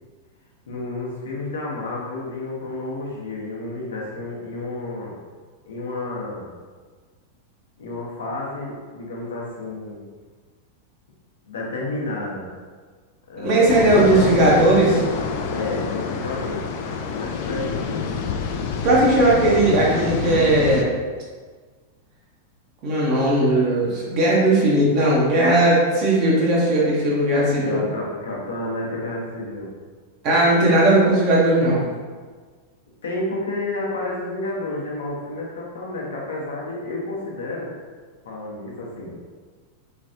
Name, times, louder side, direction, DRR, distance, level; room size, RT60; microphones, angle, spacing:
voice 1, 0.7-5.1 5.7-6.5 7.8-10.0 11.5-12.5 13.3-15.0 15.5-18.0 27.5-29.7 33.0-37.7 38.2-39.1, left 2 dB, 65° left, -3 dB, 0.8 m, -31 dB
voice 2, 13.4-14.9 18.8-20.9 22.8-27.8 30.2-31.9, right 1 dB, 40° right, -6 dB, 0.9 m, -17 dB
sound 1, 13.7-20.8, left 5 dB, 45° left, 0.3 m, -27 dB
3.3 x 3.1 x 2.6 m, 1.5 s
figure-of-eight pair, 90°, 0 cm